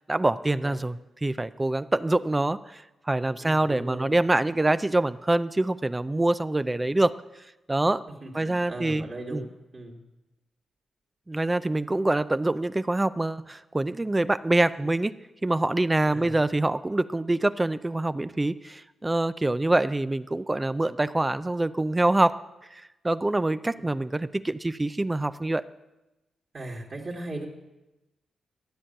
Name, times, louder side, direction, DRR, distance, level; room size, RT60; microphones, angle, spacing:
voice 1, 0.1-7.2 7.7-8.0 8.3-9.4 11.3-15.1 15.4-22.4 22.7-25.6, right 2 dB, 20° right, 14 dB, 0.4 m, -25 dB
voice 2, 3.4-4.1 8.2-10.0 16.1-16.3 26.5-27.5, right 2 dB, 40° right, -5 dB, 2.1 m, -38 dB
12.5 x 8.5 x 7.8 m, 1.0 s
cardioid pair, 75°, 0 cm